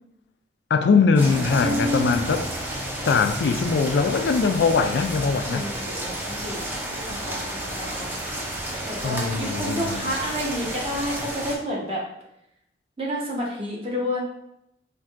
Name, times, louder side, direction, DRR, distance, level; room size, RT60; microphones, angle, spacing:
voice 1, 0.7-2.5 3.0-5.7 9.0-10.1, left 5 dB, 70° left, 0.3 m, -21 dB
sound 1, 1.2-11.6, right 1 dB, 10° right, 0.4 m, -31 dB
voice 2, 1.5-2.2 5.5-8.2 8.8-12.0 13.0-14.2, equal, 30° right, 0.9 m, -30 dB
4.4 x 2.6 x 2.5 m
head